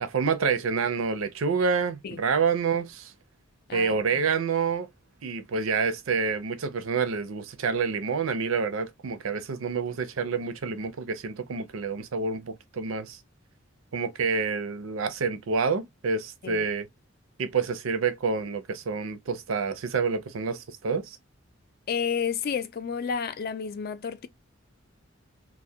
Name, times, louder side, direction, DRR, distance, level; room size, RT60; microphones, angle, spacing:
voice 1, 0.0-3.1 3.7-4.9 5.2-13.2 13.9-16.9 17.4-21.2, right 5 dB, 80° right, 0.5 m, -28 dB
voice 2, 3.7-4.2 16.4-16.7 21.9-24.3, left 6 dB, 45° left, 0.3 m, -31 dB
2.3 x 2.1 x 2.6 m
head